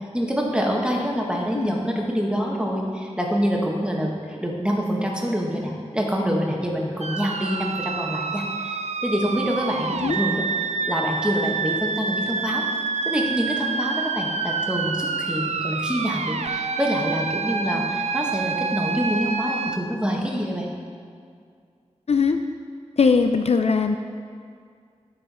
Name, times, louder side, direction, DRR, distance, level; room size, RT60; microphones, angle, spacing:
voice 1, 0.1-10.4 10.9-12.6 13.0-20.7, equal, 10° right, -1 dB, 1.3 m, -26 dB
sound 1, 7.0-19.8, right 4 dB, 70° right, 0.4 m, -27 dB
voice 2, 22.1-22.4 23.0-24.0, left 5 dB, 60° left, 7 dB, 0.4 m, -20 dB
11.5 x 4.5 x 4.3 m, 2.2 s
wide cardioid pair, 55°, 12 cm